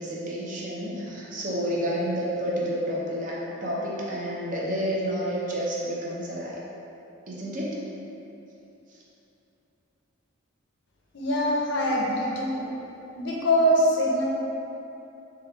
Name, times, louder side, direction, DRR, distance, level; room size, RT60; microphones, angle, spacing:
voice 1, 0.0-6.6 7.3-7.8, equal, 35° right, -5 dB, 0.4 m, -30 dB
voice 2, 11.1-12.7 13.2-14.2, equal, 55° left, -3 dB, 0.5 m, -23 dB
2.9 x 2.2 x 3.3 m, 2.9 s
head